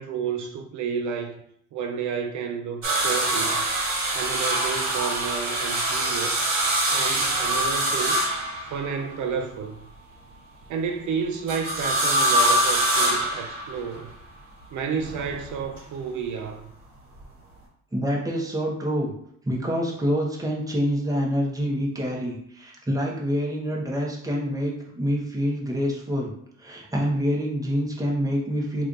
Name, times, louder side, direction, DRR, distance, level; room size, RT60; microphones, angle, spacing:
voice 1, 0.0-1.4 1.7-3.6 4.1-6.4 6.9-8.2 8.6-9.8 10.7-14.1 14.7-16.7, right 6 dB, 75° right, 0.5 m, -31 dB
sound 1, 2.8-9.1 11.5-14.0 15.0-15.8 17.2-17.3, right 1 dB, 60° right, 1.3 m, -24 dB
voice 2, 17.9-19.1 19.4-26.3 26.6-28.9, equal, 10° right, 1.0 m, -26 dB
3.2 x 2.5 x 3.9 m
cardioid pair, 90°, 30 cm